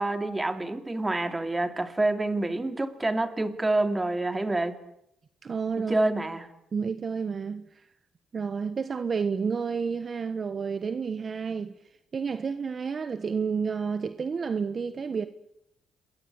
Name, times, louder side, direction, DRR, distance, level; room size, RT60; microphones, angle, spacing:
voice 1, 0.0-4.8 5.8-6.5, right 2 dB, 15° right, 2.9 m, -27 dB
voice 2, 5.4-5.9 6.7-7.8 8.3-11.7 12.1-15.3, right 5 dB, 40° right, 1.3 m, -30 dB
27.5 x 22.0 x 8.6 m
cardioid pair, 90°, 0 cm